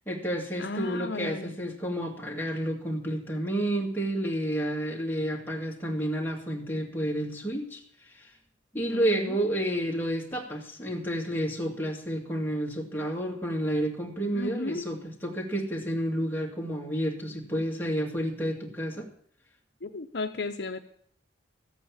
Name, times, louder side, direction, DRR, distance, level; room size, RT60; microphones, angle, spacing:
voice 1, 0.1-7.8 8.1-8.3 8.7-19.1, right 1 dB, 10° left, -1 dB, 2.2 m, -30 dB
voice 2, 0.6-1.5 8.9-9.4 14.3-14.9 19.8-20.8, left 3 dB, 60° left, 6 dB, 0.8 m, -34 dB
14.0 x 8.4 x 8.8 m, 0.62 s
head